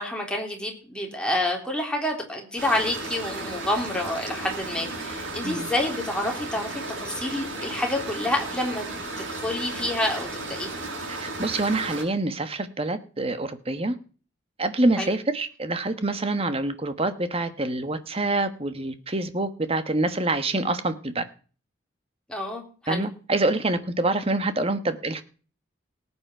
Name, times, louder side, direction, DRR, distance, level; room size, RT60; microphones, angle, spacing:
voice 1, 0.0-8.9 9.2-10.7 15.0-15.1 22.3-23.0, left 1 dB, 5° left, 3.5 m, -28 dB
sound 1, 2.6-12.0, right 2 dB, 90° right, 6.1 m, -34 dB
voice 2, 11.2-14.0 14.6-21.2 22.9-25.2, right 2 dB, 30° right, 1.2 m, -26 dB
18.5 x 8.7 x 4.5 m
head